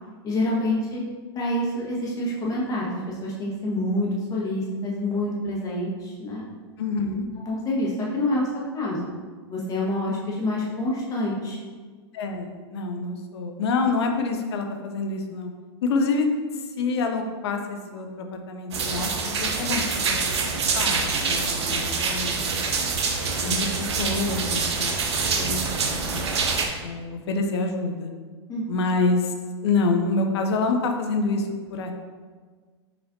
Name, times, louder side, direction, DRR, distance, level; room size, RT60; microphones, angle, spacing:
voice 1, 0.2-1.0 1.3-6.4 7.4-9.1 9.5-11.6 28.5-28.7, left 1 dB, 25° left, -4 dB, 1.4 m, -27 dB
voice 2, 6.8-7.3 12.1-15.5 15.8-16.3 16.5-20.5 20.7-22.6 23.2-23.7 24.0-26.3 26.8-28.1 28.7-29.3 29.6-31.9, left 3 dB, 70° left, 4 dB, 0.7 m, -27 dB
sound 1, 18.7-26.7, right 4 dB, 75° right, 0.7 m, -25 dB
5.9 x 3.1 x 2.7 m, 1.5 s
hypercardioid pair, 110°, 14 cm